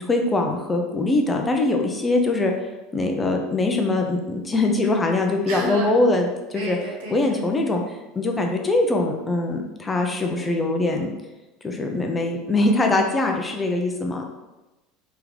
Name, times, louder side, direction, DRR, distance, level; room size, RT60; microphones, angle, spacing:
voice 1, 0.0-2.5 2.9-6.8 7.1-11.1 11.6-14.2, left 2 dB, 15° left, 2 dB, 0.5 m, -22 dB
voice 2, 5.5-6.0 6.5-7.4, right 1 dB, 85° right, -1 dB, 1.1 m, -31 dB
3.6 x 3.5 x 3.1 m, 1.0 s
supercardioid pair, 135°, 0 cm